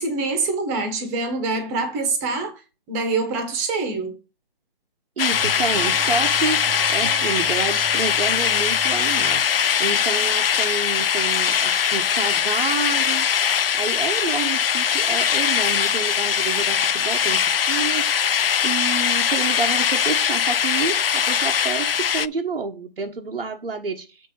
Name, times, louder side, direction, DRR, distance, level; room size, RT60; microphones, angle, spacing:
voice 1, 0.0-2.5 2.9-4.1, right 3 dB, 15° right, 1.5 m, -25 dB
sound 1, 5.2-22.3, left 8 dB, 70° left, 0.6 m, -21 dB
voice 2, 5.2-9.4 9.8-13.3 13.7-18.3 18.6-24.3, right 4 dB, 80° right, 1.5 m, -29 dB
sound 2, 5.3-10.7, right 5 dB, 45° right, 1.2 m, -36 dB
7.7 x 3.8 x 5.6 m
hypercardioid pair, 160°, 30 cm